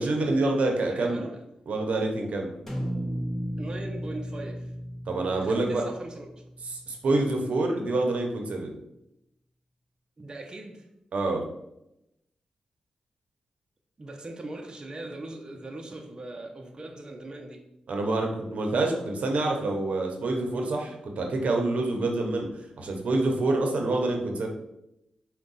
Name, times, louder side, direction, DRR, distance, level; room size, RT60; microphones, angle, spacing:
voice 1, 0.0-1.2 1.7-2.5 5.1-5.8 6.6-8.7 11.1-11.4 17.9-24.5, right 2 dB, 70° right, 2 dB, 0.7 m, -27 dB
voice 2, 0.8-1.4 3.6-4.7 5.4-6.3 10.2-10.9 14.0-17.6, right 2 dB, 35° right, 2 dB, 0.5 m, -40 dB
sound 1, 2.7-6.9, equal, 5° left, 1.0 m, -35 dB
4.6 x 2.2 x 3.9 m, 0.86 s
cardioid pair, 70°, 2 cm